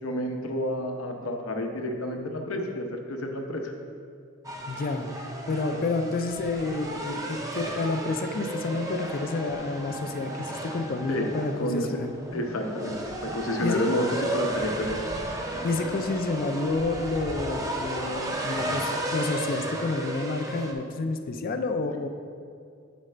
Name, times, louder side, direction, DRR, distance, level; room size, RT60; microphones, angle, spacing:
voice 1, 0.0-3.7 11.1-11.3 11.6-12.0 12.3-15.1, left 1 dB, 85° left, 3 dB, 0.7 m, -30 dB
sound 1, 4.4-20.7, right 1 dB, 15° right, 0.5 m, -34 dB
voice 2, 4.7-12.1 13.6-13.8 15.6-22.1, left 3 dB, 45° left, 7 dB, 0.4 m, -29 dB
7.3 x 5.1 x 3.3 m, 2.3 s
head